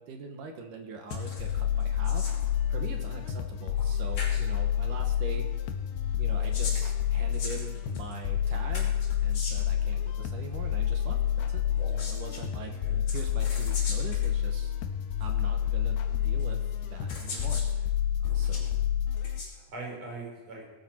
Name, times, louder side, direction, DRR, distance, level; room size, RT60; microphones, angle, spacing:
voice 1, 0.0-2.3 2.7-5.5 6.2-12.8 13.1-14.7 15.2-17.9 18.3-18.7, right 4 dB, 60° right, 4 dB, 2.5 m, -43 dB
sound 1, 1.1-19.4, left 10 dB, 75° left, 2.9 m, -29 dB
sound 2, 1.1-1.5 1.8-2.5 3.8-3.9 4.2-4.4 6.2-8.1 8.7-9.8 11.7-12.4 13.1-14.3 15.2-15.3 16.4-16.5 17.1-17.7 18.2-18.7 19.2-19.5, left 3 dB, 40° left, 3.4 m, -40 dB
voice 2, 12.6-13.0 18.5-18.8 19.4-20.6, right 3 dB, 40° right, -2 dB, 5.9 m, -43 dB
20.0 x 13.5 x 4.5 m, 1.2 s
omnidirectional pair, 4.8 m